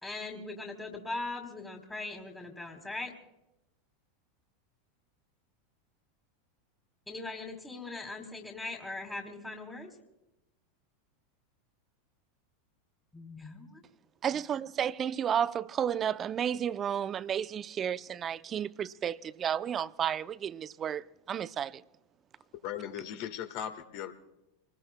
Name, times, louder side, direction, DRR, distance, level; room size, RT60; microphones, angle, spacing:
voice 1, 0.0-3.1 7.1-10.0 13.1-13.8, left 2 dB, 10° left, 2.1 m, -40 dB
voice 2, 14.2-21.8, right 9 dB, 30° right, 0.5 m, -32 dB
voice 3, 22.6-24.1, left 10 dB, 55° left, 1.5 m, -38 dB
26.0 x 20.5 x 2.2 m
figure-of-eight pair, 90°, 0 cm